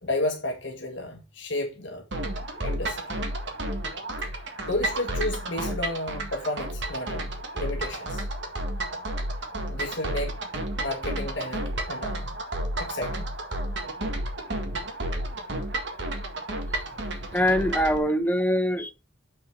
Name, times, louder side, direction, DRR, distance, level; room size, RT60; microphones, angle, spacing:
voice 1, 0.0-2.0 2.6-3.2 4.7-8.2 9.7-10.4 10.8-12.3 12.8-13.3, left 1 dB, 60° left, 1.5 m, -32 dB
sound 1, 2.1-18.0, right 1 dB, 60° right, 1.7 m, -31 dB
voice 2, 17.3-18.9, equal, 10° left, 0.7 m, -24 dB
7.1 x 5.8 x 4.5 m
head